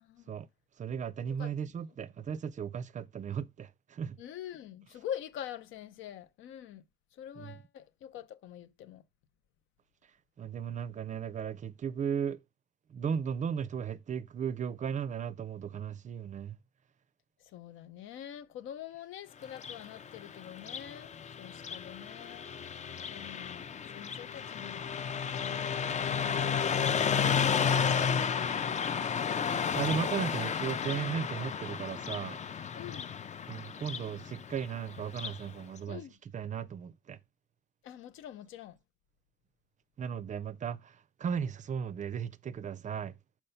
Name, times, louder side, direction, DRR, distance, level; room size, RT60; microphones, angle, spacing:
voice 1, 0.0-0.3 1.2-1.5 4.2-6.8 7.1-9.0 17.5-21.1 21.4-22.5 23.1-23.6 23.9-24.9 30.9-31.1 32.7-33.1 35.9-36.1 37.8-38.8, left 10 dB, 85° left, 0.6 m, -45 dB
voice 2, 0.8-4.2 7.4-7.6 10.4-12.4 12.9-16.6 29.7-32.4 33.5-36.0 36.3-37.2 40.0-40.9 41.2-43.1, right 7 dB, 40° right, 0.4 m, -36 dB
Car passing by, 19.5-35.4, left 7 dB, 35° left, 0.5 m, -33 dB
5.4 x 4.5 x 5.6 m
cardioid pair, 90°, 20 cm